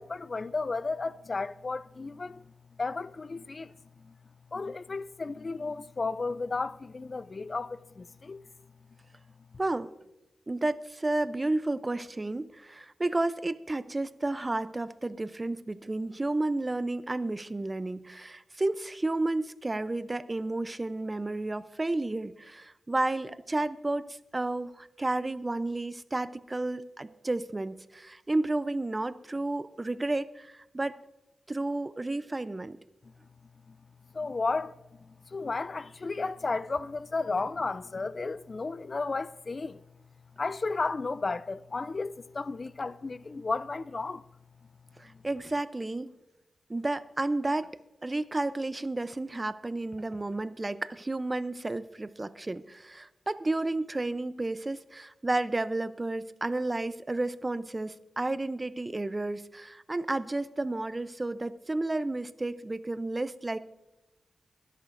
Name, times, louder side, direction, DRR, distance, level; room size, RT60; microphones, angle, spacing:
voice 1, 0.0-2.5 2.8-4.1 4.5-8.4 9.5-9.6 33.7-33.8 34.1-34.7 35.0-39.8 40.4-44.3 45.1-45.2, left 3 dB, 45° left, 0.4 m, -33 dB
voice 2, 9.6-9.9 10.5-31.0 31.5-32.8 45.0-46.1 46.7-47.7 48.0-63.6, right 2 dB, 30° right, 0.5 m, -32 dB
20.5 x 11.0 x 2.6 m
cardioid pair, 55°, 0 cm